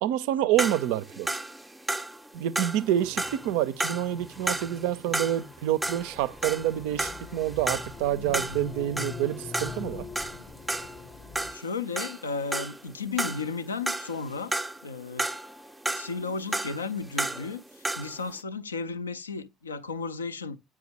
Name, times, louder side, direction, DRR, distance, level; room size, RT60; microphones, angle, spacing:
voice 1, 0.0-1.3 2.3-10.1, right 12 dB, 65° right, 0.4 m, -28 dB
sound 1, 0.6-5.6 5.8-12.9 13.2-14.9 15.2-18.2, right 2 dB, 10° right, 0.5 m, -33 dB
sound 2, 2.8-11.5, left 5 dB, 35° left, 0.6 m, -43 dB
voice 2, 11.5-14.6 14.8-15.3 15.9-20.6, left 4 dB, 85° left, 0.3 m, -34 dB
8.5 x 4.6 x 2.8 m
figure-of-eight pair, 55°, 0 cm